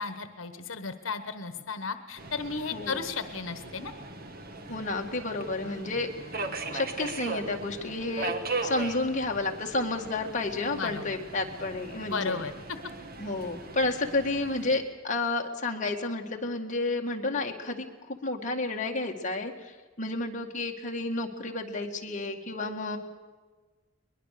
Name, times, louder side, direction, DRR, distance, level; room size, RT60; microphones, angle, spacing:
voice 1, 0.0-3.9 10.7-11.2 12.1-12.8, left 4 dB, 85° left, 10 dB, 1.2 m, -34 dB
Subway metro underground, 2.2-14.8, right 3 dB, 50° right, 1.6 m, -39 dB
voice 2, 4.7-6.1 6.7-8.4 8.6-12.4 13.2-19.5 20.0-23.0, left 2 dB, 40° left, 1 dB, 2.0 m, -31 dB
21.5 x 21.0 x 6.8 m, 1.4 s
head